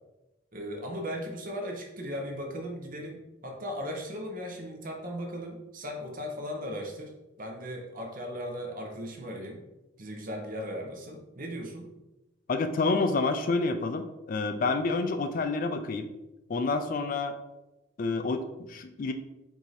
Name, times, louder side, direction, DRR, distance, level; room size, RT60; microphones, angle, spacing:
voice 1, 0.5-7.1 7.4-9.6 10.0-11.9, equal, 45° right, 1 dB, 0.8 m, -37 dB
voice 2, 12.5-16.1 16.5-17.3 18.0-19.1, left 3 dB, 45° left, 8 dB, 0.3 m, -28 dB
4.7 x 2.7 x 4.0 m, 0.99 s
head